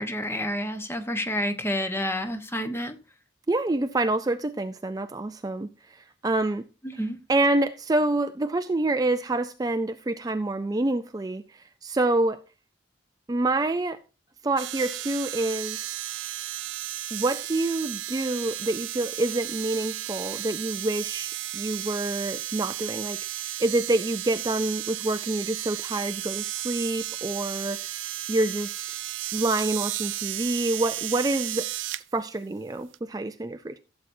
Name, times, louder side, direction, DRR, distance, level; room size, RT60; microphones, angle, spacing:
voice 1, 0.0-2.9 6.8-7.2, left 1 dB, 15° left, 1.0 m, -29 dB
voice 2, 3.5-6.6 7.3-12.4 13.3-14.0 14.4-16.0 17.1-28.8 29.3-31.7 32.1-33.8, right 2 dB, 20° right, 0.4 m, -27 dB
sound 1, 14.6-32.0 32.9-33.0, right 15 dB, 85° right, 0.5 m, -34 dB
15.5 x 7.8 x 2.7 m
head